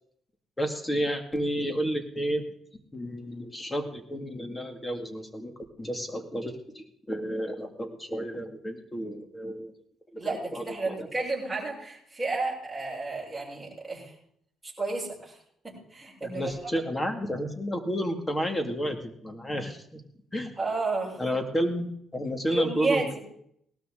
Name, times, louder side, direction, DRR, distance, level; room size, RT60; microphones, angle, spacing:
voice 1, 0.6-2.4 2.9-9.7 10.1-11.1 16.2-19.0 19.2-20.0 20.3-20.5 21.2-23.2, equal, 15° left, 6 dB, 2.3 m, -31 dB
voice 2, 10.2-14.1 14.6-15.4 15.6-16.5 20.6-21.2 22.5-23.2, right 3 dB, 5° right, -5 dB, 6.9 m, -31 dB
18.5 x 13.0 x 3.9 m, 0.69 s
cardioid pair, 90°, 0 cm